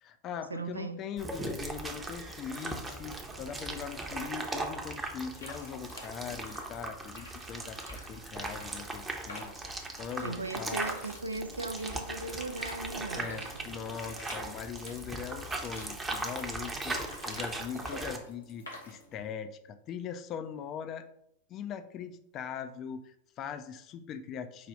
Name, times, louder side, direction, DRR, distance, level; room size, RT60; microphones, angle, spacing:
voice 1, 0.0-11.0 13.1-21.1 21.5-24.7, left 7 dB, 35° left, 0.3 m, -41 dB
voice 2, 0.5-1.0 10.2-13.7, right 2 dB, 80° right, 0.4 m, -38 dB
sound 1, 1.2-18.2, right 2 dB, 15° right, 0.6 m, -39 dB
sound 2, 5.2-19.3, left 1 dB, 80° left, 1.4 m, -50 dB
4.8 x 2.4 x 4.0 m
figure-of-eight pair, 90°, 0 cm